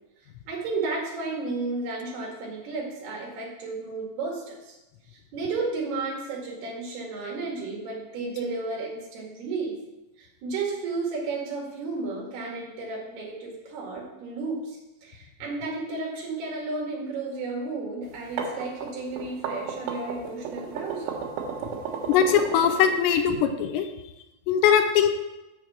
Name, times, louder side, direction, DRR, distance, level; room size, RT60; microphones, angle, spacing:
voice 1, 0.5-4.8 5.1-9.8 10.2-21.1, right 3 dB, 65° right, -2 dB, 3.8 m, -33 dB
sound 1, 18.1-23.3, right 6 dB, 90° right, 3.7 m, -33 dB
voice 2, 22.1-23.9 24.5-25.1, left 8 dB, 85° left, 6 dB, 2.9 m, -21 dB
7.5 x 6.4 x 6.0 m, 0.98 s
omnidirectional pair, 5.1 m